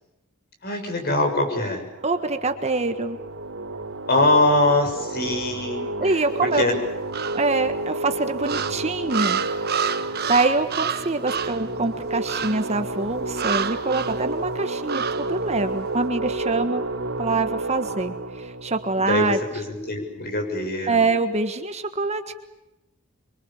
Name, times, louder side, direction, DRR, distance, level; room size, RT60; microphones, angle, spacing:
voice 1, 0.6-1.8 4.1-6.7 19.0-21.1, left 2 dB, 50° left, 5 dB, 6.8 m, -23 dB
sound 1, 1.9-20.1, right 2 dB, 70° right, 4.2 m, -31 dB
voice 2, 2.0-3.2 6.0-6.6 7.3-9.4 10.3-16.8 17.2-19.4 20.9-22.3, right 3 dB, 35° right, 8 dB, 1.6 m, -25 dB
sound 2, 7.1-7.7 8.4-11.7 12.3-12.7 13.3-14.2 14.9-15.3, right 7 dB, 50° right, 1.3 m, -28 dB
26.0 x 24.0 x 7.3 m, 0.93 s
head